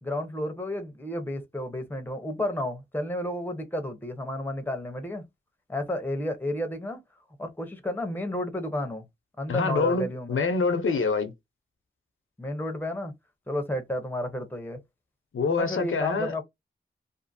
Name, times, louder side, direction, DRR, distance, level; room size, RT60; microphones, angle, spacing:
voice 1, 0.0-5.3 5.7-7.0 7.4-9.0 9.4-10.4 12.4-13.1 13.5-14.8 15.5-16.4, left 1 dB, 10° left, 0.7 m, -32 dB
voice 2, 9.5-11.3 15.3-16.4, left 4 dB, 90° left, 0.6 m, -26 dB
2.6 x 2.5 x 2.6 m
wide cardioid pair, 100°, 21 cm